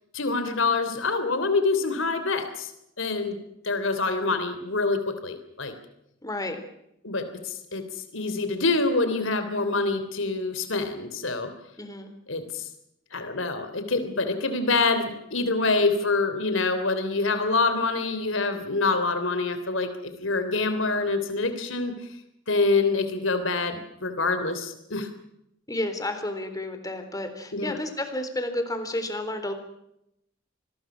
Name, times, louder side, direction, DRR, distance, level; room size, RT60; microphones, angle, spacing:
voice 1, 0.1-2.7 3.0-3.4 3.6-5.7 7.0-7.8 8.1-11.5 12.3-12.7 13.1-21.9 22.5-25.1 27.5-27.8, left 3 dB, 80° left, 9 dB, 3.3 m, -26 dB
voice 2, 6.2-6.6 11.8-12.1 25.7-29.5, left 1 dB, 20° left, 8 dB, 3.7 m, -31 dB
26.5 x 21.0 x 6.2 m, 0.79 s
head